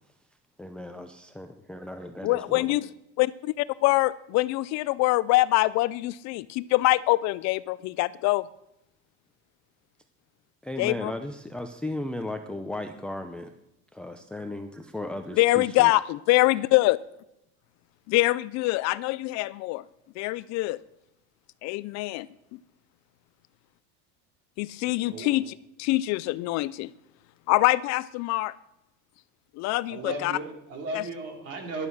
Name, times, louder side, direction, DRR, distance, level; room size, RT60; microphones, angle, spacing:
voice 1, 0.6-2.7 10.6-13.5 13.9-15.9, left 1 dB, 5° left, 6 dB, 0.6 m, -36 dB
voice 2, 2.2-2.9 3.2-8.4 10.8-11.1 15.4-17.0 18.1-19.8 20.2-20.8 21.6-22.3 24.6-26.9 27.5-28.5 29.6-30.4 30.9-31.0, left 19 dB, 50° left, 18 dB, 0.4 m, -24 dB
voice 3, 29.9-31.9, right 3 dB, 45° right, 3 dB, 3.6 m, -35 dB
14.0 x 11.5 x 6.4 m, 0.86 s
cardioid pair, 155°, 34 cm